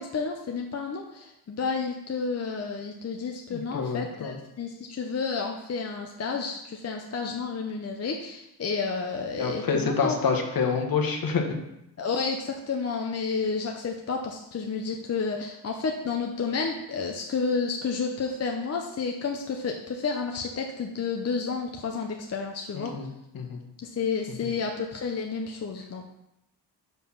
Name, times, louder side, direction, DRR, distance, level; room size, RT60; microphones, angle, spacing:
voice 1, 0.0-10.2 12.0-22.9 23.8-26.0, left 5 dB, 40° left, 2 dB, 0.6 m, -31 dB
voice 2, 3.5-4.4 9.3-11.4 22.7-23.1 23.3-23.6, left 5 dB, 55° left, 3 dB, 1.2 m, -27 dB
5.6 x 4.5 x 5.6 m, 0.85 s
cardioid pair, 105°, 41 cm